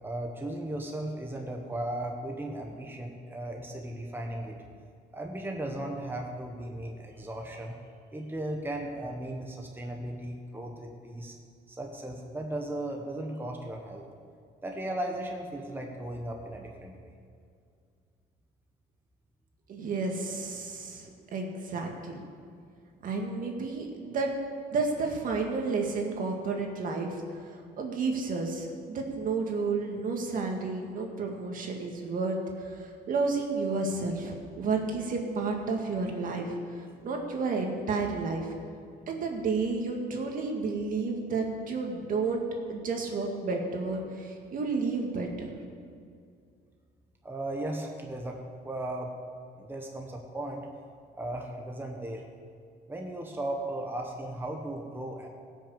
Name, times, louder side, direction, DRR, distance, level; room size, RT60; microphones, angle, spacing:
voice 1, 0.0-4.6 5.1-7.7 8.1-11.4 11.7-14.1 14.6-17.1 47.2-48.4 48.6-49.1 49.6-50.7 51.2-52.3 52.9-55.3, right 1 dB, 10° right, 1 dB, 1.3 m, -36 dB
voice 2, 19.7-22.2 23.0-24.3 24.7-38.5 39.1-42.4 42.7-45.5, right 4 dB, 55° right, 2 dB, 2.0 m, -31 dB
16.5 x 6.5 x 7.0 m, 2.3 s
cardioid pair, 110°, 17 cm